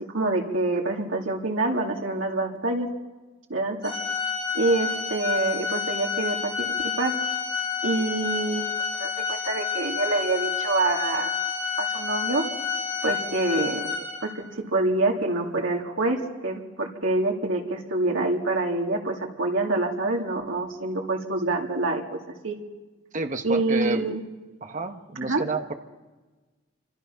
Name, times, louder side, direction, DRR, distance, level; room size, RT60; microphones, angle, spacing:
voice 1, 0.1-2.9 3.5-3.9 4.5-6.7 7.0-7.1 7.8-8.7 9.0-11.3 11.8-12.4 13.0-13.9 14.2-14.4 14.7-22.2 22.4-22.5 23.4-24.2 25.2-25.4, right 2 dB, 85° right, 0 dB, 2.6 m, -26 dB
Organ, 3.8-14.5, left 6 dB, 20° left, 3.4 m, -29 dB
voice 2, 23.1-24.0 24.6-25.7, right 2 dB, 40° right, 6 dB, 1.2 m, -30 dB
28.0 x 26.0 x 5.8 m, 1.2 s
head